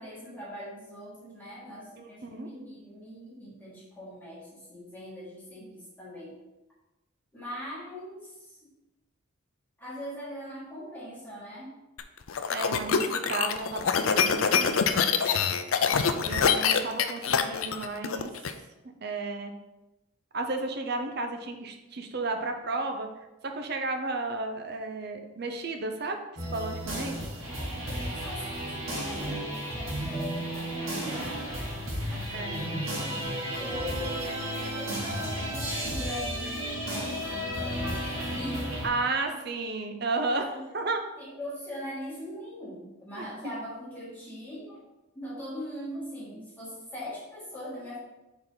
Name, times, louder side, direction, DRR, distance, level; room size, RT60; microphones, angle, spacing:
voice 1, 0.0-6.4 7.3-8.7 9.8-11.8 15.7-16.6 27.8-31.7 32.0-38.8 39.3-39.4 40.5-40.6 41.2-44.8 45.1-48.0, equal, 10° left, -10 dB, 1.9 m, -41 dB
voice 2, 2.0-2.5 12.5-15.1 16.2-18.3 19.0-19.5 20.3-23.1 23.5-26.2 26.5-27.3 32.3-32.7 38.8-41.0 43.2-43.3, right 3 dB, 50° right, 5 dB, 0.7 m, -33 dB
sound 1, 12.0-18.5, left 6 dB, 75° left, 0.5 m, -25 dB
sound 2, 26.4-38.9, equal, 75° right, 2.0 m, -33 dB
6.6 x 4.0 x 3.9 m, 1.0 s
head